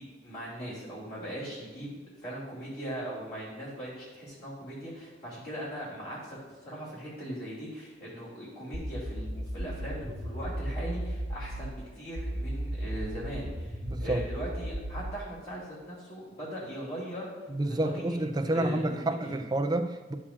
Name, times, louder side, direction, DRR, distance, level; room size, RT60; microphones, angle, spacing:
voice 1, 0.0-1.9 2.2-17.3 17.8-18.2 18.5-19.3, equal, 50° left, -8 dB, 2.5 m, -39 dB
sound 1, 8.7-11.7 12.2-15.2, right 1 dB, 70° right, 1.1 m, -35 dB
voice 2, 13.8-14.2 17.5-20.1, right 1 dB, 20° right, 6 dB, 0.4 m, -29 dB
11.0 x 7.1 x 2.5 m, 1.3 s
head